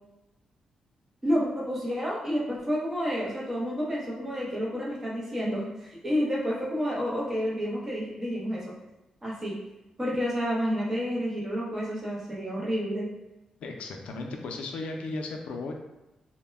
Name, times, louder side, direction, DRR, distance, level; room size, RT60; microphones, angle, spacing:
voice 1, 1.2-8.6 9.2-9.6 10.0-13.1, equal, 20° right, -5 dB, 0.6 m, -29 dB
voice 2, 13.6-15.7, left 3 dB, 85° left, 2 dB, 0.4 m, -35 dB
2.1 x 2.0 x 3.2 m, 0.96 s
wide cardioid pair, 150°, 2 cm